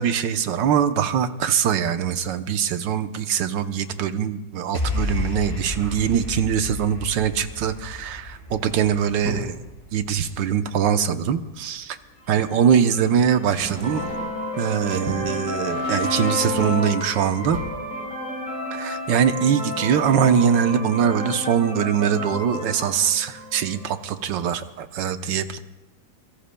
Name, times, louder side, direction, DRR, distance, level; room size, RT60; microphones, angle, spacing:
voice 1, 0.0-9.5 9.9-12.0 12.3-14.0 14.6-17.6 18.7-25.6, right 8 dB, 85° right, 9 dB, 1.5 m, -22 dB
sound 1, 4.7-11.2, left 2 dB, 30° left, 3.7 m, -32 dB
sound 2, 9.0-9.7 11.3-11.4 12.5-12.7 13.3-14.6 14.9-15.4 16.8-17.1 17.4-17.7, right 2 dB, 70° right, 5.2 m, -36 dB
sound 3, 12.3-24.0, left 1 dB, 75° left, 6.3 m, -31 dB
25.5 x 23.0 x 2.2 m, 1.0 s
omnidirectional pair, 1.9 m